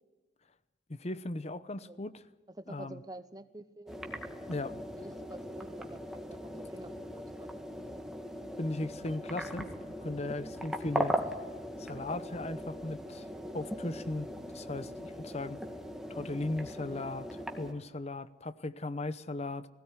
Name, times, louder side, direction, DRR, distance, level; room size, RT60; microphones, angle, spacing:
voice 1, 0.9-2.2 2.7-3.0 4.5-4.8 8.6-9.7 10.0-11.2 11.8-13.3 13.5-15.6 16.1-19.7, left 2 dB, 35° left, 0.8 m, -37 dB
voice 2, 2.6-4.1 4.9-7.5 16.8-17.1, right 1 dB, 20° right, 0.8 m, -48 dB
sound 1, 3.9-17.7, equal, ahead, 2.1 m, -39 dB
20.5 x 17.0 x 9.7 m
head